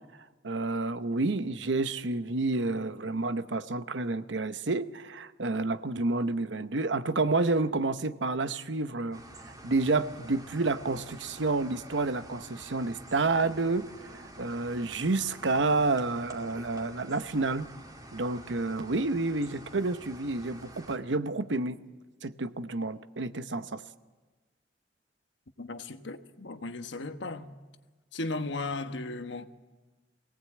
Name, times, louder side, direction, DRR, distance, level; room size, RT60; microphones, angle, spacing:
voice 1, 0.4-9.2 9.6-17.7 18.1-21.8 22.2-23.8, right 3 dB, 80° right, 0.9 m, -29 dB
sound 1, 9.1-21.0, right 1 dB, 20° right, 2.4 m, -48 dB
voice 2, 25.6-27.5 28.1-29.5, left 2 dB, 70° left, 1.2 m, -36 dB
23.5 x 18.0 x 8.7 m
head